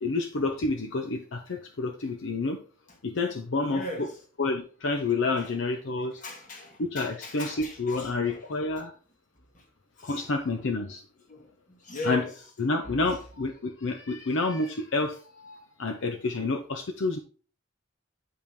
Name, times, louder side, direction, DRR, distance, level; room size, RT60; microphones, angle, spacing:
voice 1, 0.0-2.6 3.0-4.1 4.4-6.2 6.8-8.9 10.0-11.0 12.0-12.3 12.6-17.2, left 3 dB, 65° left, 0.6 m, -29 dB
voice 2, 3.7-4.2 5.4-5.5 6.2-8.5 9.5-9.6 10.0-10.3 11.3-12.3 12.8-13.2, left 1 dB, 40° left, 1.7 m, -39 dB
8.8 x 5.4 x 3.1 m
head